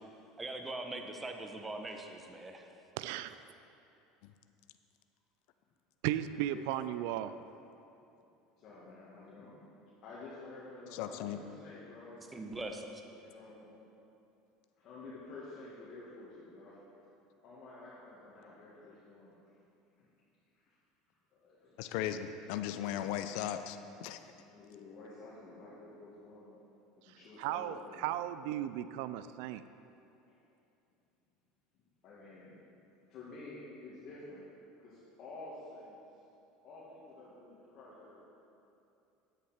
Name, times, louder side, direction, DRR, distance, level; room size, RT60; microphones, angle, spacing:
voice 1, 0.4-2.7 12.3-12.9, right 2 dB, 15° right, 4 dB, 1.0 m, -41 dB
voice 2, 3.0-3.4 6.0-7.3 27.1-29.6, right 12 dB, 75° right, 13 dB, 0.3 m, -36 dB
voice 3, 8.6-9.6 10.0-12.2 13.0-13.7 14.8-16.8 17.4-19.4 20.0-20.1 21.3-21.9 24.5-26.6 27.1-28.1 32.0-32.5 33.1-34.5 34.8-36.0 36.6-38.2, left 2 dB, 50° left, -8 dB, 1.9 m, -50 dB
voice 4, 10.9-11.4 21.8-24.2, left 11 dB, 70° left, 9 dB, 0.5 m, -37 dB
9.9 x 8.3 x 4.3 m, 2.8 s
supercardioid pair, 105°, 0 cm